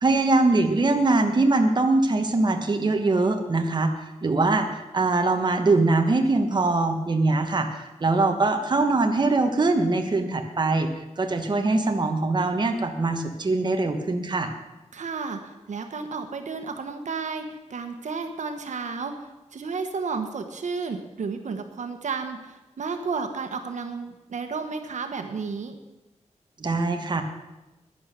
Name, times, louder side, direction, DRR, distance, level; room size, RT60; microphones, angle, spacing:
voice 1, 0.0-3.9 4.2-10.9 11.2-14.5 26.6-27.2, right 3 dB, 40° right, 5 dB, 1.2 m, -22 dB
voice 2, 14.9-25.8, right 5 dB, 85° right, 6 dB, 1.2 m, -32 dB
11.0 x 10.0 x 6.7 m, 1.0 s
wide cardioid pair, 140°, 12 cm